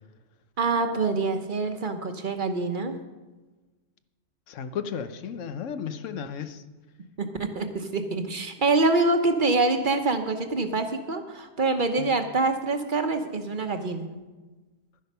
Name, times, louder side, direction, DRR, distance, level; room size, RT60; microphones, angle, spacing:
voice 1, 0.6-3.0 7.2-14.2, right 3 dB, 45° right, 1.0 m, -25 dB
voice 2, 4.5-6.6 12.0-12.2, left 7 dB, 85° left, 1.1 m, -34 dB
11.5 x 10.5 x 5.5 m
omnidirectional pair, 1.3 m